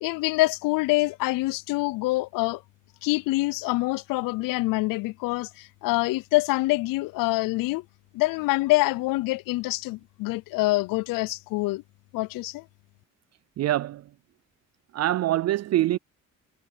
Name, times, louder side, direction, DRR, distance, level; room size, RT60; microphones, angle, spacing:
voice 1, 0.0-2.6 3.0-7.8 8.1-11.8 12.1-12.6, left 21 dB, 80° left, 0.5 m, -25 dB
voice 2, 13.6-14.1 14.9-16.0, right 14 dB, 50° right, 0.5 m, -24 dB
cardioid pair, 100°, 33 cm